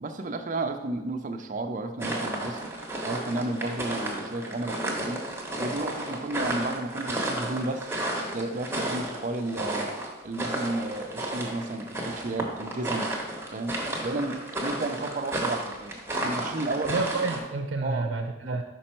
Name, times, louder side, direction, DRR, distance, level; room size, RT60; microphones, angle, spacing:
voice 1, 0.0-2.7 3.0-5.3 5.6-7.9 8.3-9.9 10.2-13.1 13.5-16.9 17.8-18.1 18.4-18.6, right 2 dB, 45° right, 7 dB, 0.5 m, -32 dB
sound 1, 2.0-17.4, right 1 dB, 15° right, 1.0 m, -32 dB
voice 2, 16.8-18.6, right 3 dB, 90° right, 5 dB, 0.5 m, -29 dB
5.4 x 5.3 x 4.3 m, 1.1 s
head